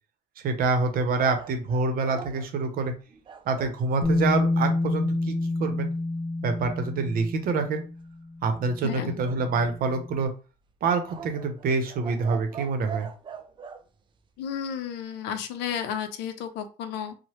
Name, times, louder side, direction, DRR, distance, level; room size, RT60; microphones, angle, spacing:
voice 1, 0.4-2.9 3.5-5.9 6.4-7.8 8.4-10.3 10.8-13.1, right 4 dB, 60° right, 7 dB, 0.7 m, -26 dB
sound 1, 1.2-3.8 9.2-10.0 11.1-13.8, right 6 dB, 30° right, 0.4 m, -42 dB
Bass guitar, 4.0-10.1, left 2 dB, 25° left, 0.7 m, -28 dB
voice 2, 8.8-9.2 14.4-17.1, left 8 dB, 85° left, 8 dB, 0.5 m, -32 dB
3.0 x 2.0 x 2.9 m, 0.34 s
cardioid pair, 110°, 17 cm